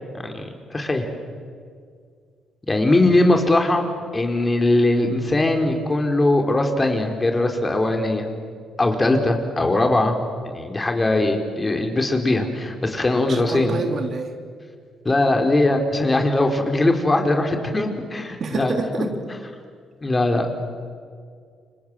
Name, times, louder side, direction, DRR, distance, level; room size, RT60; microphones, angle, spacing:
voice 1, 0.2-1.1 2.7-3.9 4.1-8.3 8.8-10.2 10.4-13.8 15.0-18.8 20.0-20.5, left 2 dB, 20° left, 4 dB, 4.1 m, -20 dB
voice 2, 13.3-14.3 18.4-19.1, right 4 dB, 55° right, 5 dB, 3.2 m, -27 dB
29.5 x 25.5 x 7.6 m, 2.1 s
cardioid pair, 90°, 0 cm